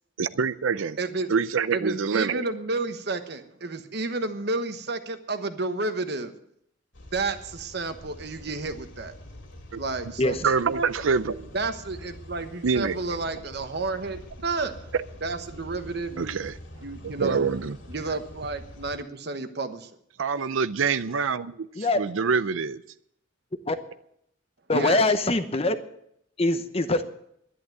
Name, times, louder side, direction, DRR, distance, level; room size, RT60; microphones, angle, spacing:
voice 1, 0.2-1.0 1.3-2.4 9.7-9.8 10.4-11.5 12.6-13.0 16.2-16.6 17.0-17.8 20.2-22.8, right 5 dB, 80° right, 0.5 m, -26 dB
voice 2, 1.0-1.3 1.7-6.3 7.1-9.1 9.8-10.4 10.8-10.9 11.5-14.7 15.2-16.4 16.8-17.4 17.9-19.9 24.7-25.0, right 3 dB, 55° right, 1.2 m, -31 dB
sound 1, 6.9-19.0, left 1 dB, 65° left, 2.5 m, -45 dB
voice 3, 24.7-25.7 26.4-27.0, left 2 dB, 30° left, 0.9 m, -23 dB
11.0 x 11.0 x 7.8 m
head